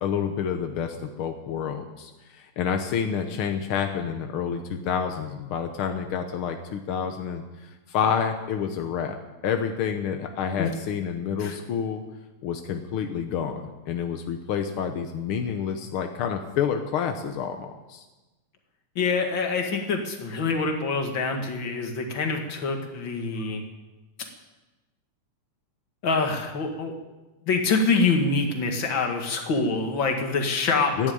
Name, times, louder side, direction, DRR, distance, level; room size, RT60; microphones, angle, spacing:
voice 1, 0.0-12.0 12.4-18.0 31.0-31.1, left 7 dB, 65° left, 5 dB, 1.3 m, -29 dB
voice 2, 19.0-23.6 26.0-26.9 27.5-31.1, left 4 dB, 45° left, 3 dB, 2.2 m, -25 dB
14.0 x 10.5 x 9.4 m, 1.1 s
omnidirectional pair, 3.5 m